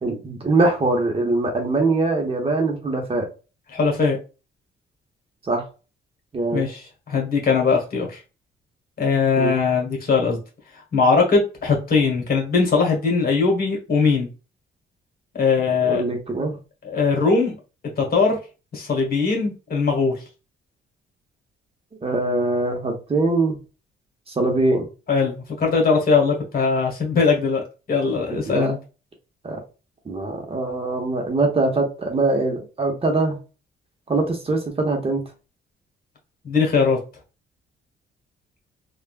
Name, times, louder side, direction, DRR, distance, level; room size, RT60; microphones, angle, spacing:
voice 1, 0.0-3.3 5.4-5.6 6.3-6.7 9.4-9.6 15.7-16.6 22.0-23.6 24.3-24.9 28.3-28.7 29.4-29.6 30.0-33.4 34.1-35.2, right 2 dB, 30° right, 2 dB, 1.0 m, -22 dB
voice 2, 3.7-4.2 6.5-6.8 7.1-8.2 9.0-10.4 10.9-14.3 15.3-16.0 16.8-17.5 18.0-18.4 18.7-20.2 25.1-27.6 27.9-28.8 36.4-37.0, left 4 dB, 50° left, 1 dB, 1.4 m, -20 dB
3.5 x 2.4 x 2.4 m, 0.32 s
cardioid pair, 90°, 20 cm